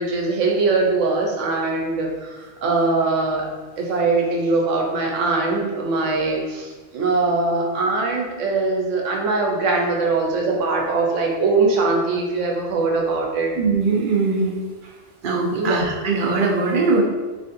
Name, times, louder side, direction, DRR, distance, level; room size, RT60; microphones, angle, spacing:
voice 1, 0.0-3.5 3.8-13.5 15.5-15.8, right 3 dB, 85° right, 0 dB, 1.1 m, -21 dB
voice 2, 13.6-14.6 14.8-14.9 15.2-17.0, right 4 dB, 55° right, -1 dB, 0.7 m, -21 dB
4.0 x 3.2 x 2.6 m, 1.3 s
omnidirectional pair, 1.3 m